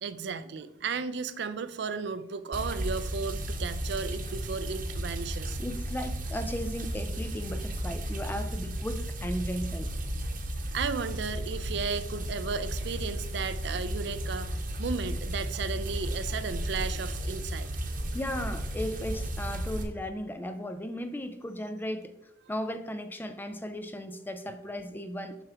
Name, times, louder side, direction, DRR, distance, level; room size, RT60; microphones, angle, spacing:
voice 1, 0.0-5.6 10.7-17.7, right 5 dB, 65° right, 12 dB, 0.4 m, -34 dB
sound 1, 2.5-19.8, right 1 dB, 45° right, 0.9 m, -34 dB
voice 2, 5.6-9.9 18.1-22.1 22.5-25.4, equal, 10° left, 9 dB, 0.4 m, -36 dB
7.0 x 5.8 x 3.4 m, 0.85 s
head